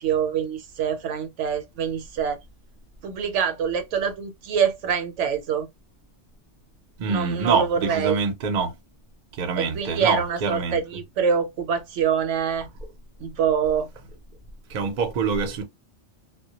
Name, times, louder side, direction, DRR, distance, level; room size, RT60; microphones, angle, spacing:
voice 1, 0.0-2.4 3.0-5.7 7.1-8.2 9.6-12.7 13.2-13.9, right 7 dB, 75° right, 0.9 m, -25 dB
voice 2, 7.0-8.7 9.3-10.8 14.7-15.6, right 5 dB, 50° right, 0.6 m, -25 dB
2.1 x 2.1 x 2.7 m
omnidirectional pair, 1.3 m